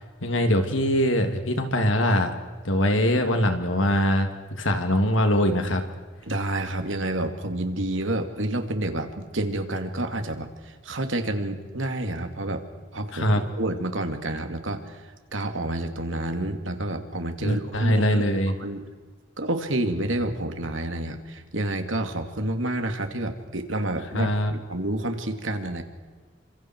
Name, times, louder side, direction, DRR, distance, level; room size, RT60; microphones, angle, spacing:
voice 1, 0.0-2.3 2.6-4.3 4.6-5.8 13.1-13.4 17.4-18.5 24.1-24.5, equal, 75° left, 5 dB, 3.0 m, -22 dB
voice 2, 6.3-10.5 10.8-12.6 12.9-15.0 15.3-18.3 18.6-18.8 19.4-25.8, right 1 dB, 75° right, 6 dB, 2.6 m, -29 dB
29.5 x 26.0 x 4.8 m, 1.5 s
head